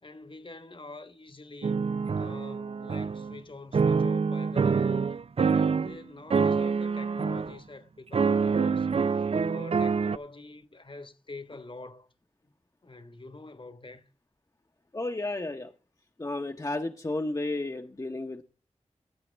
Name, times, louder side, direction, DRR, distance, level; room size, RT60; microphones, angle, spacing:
voice 1, 0.0-1.8 2.1-5.1 5.5-12.1 12.4-12.5 12.8-14.1, left 3 dB, 45° left, 1.3 m, -46 dB
sound 1, 1.6-3.4 3.7-6.0 6.3-7.6 8.1-10.2, right 5 dB, 55° right, 0.4 m, -26 dB
voice 2, 14.9-15.7 16.2-18.4, left 2 dB, 30° left, 0.9 m, -32 dB
15.5 x 8.4 x 3.3 m
wide cardioid pair, 50°, 12 cm